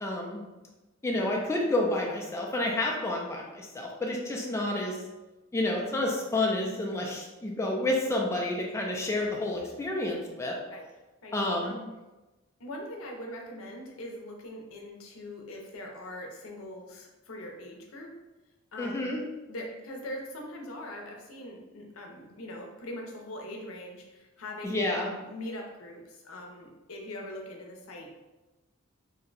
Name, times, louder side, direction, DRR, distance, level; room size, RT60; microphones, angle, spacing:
voice 1, 0.0-0.4 1.0-5.0 5.5-10.6 11.3-11.7 18.8-19.2 24.6-25.1, left 1 dB, 15° left, -1 dB, 0.3 m, -29 dB
voice 2, 12.6-18.1 18.7-19.1 19.5-28.1, left 1 dB, 80° left, 1 dB, 0.6 m, -42 dB
2.7 x 2.1 x 3.8 m, 1.1 s
head